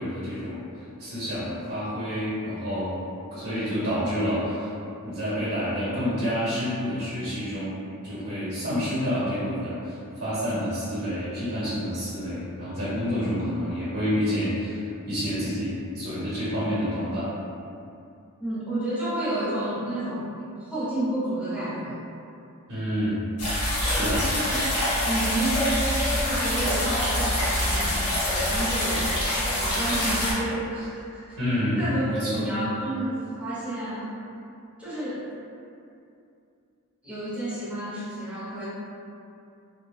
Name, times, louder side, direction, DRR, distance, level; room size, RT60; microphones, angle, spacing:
voice 1, 0.0-2.9 3.3-4.7 5.0-17.3 22.7-23.2 23.8-24.3 31.4-31.8 32.1-32.5, equal, 65° right, -11 dB, 0.7 m, -28 dB
voice 2, 18.4-20.3 20.6-22.0 24.3-24.6 25.0-29.2 29.4-31.4 31.8-34.1 34.8-35.2 37.0-38.7, right 1 dB, 5° right, -11 dB, 0.7 m, -30 dB
sound 1, 23.4-30.3, left 1 dB, 80° left, 0.8 m, -25 dB
2.5 x 2.1 x 2.3 m, 2.6 s
head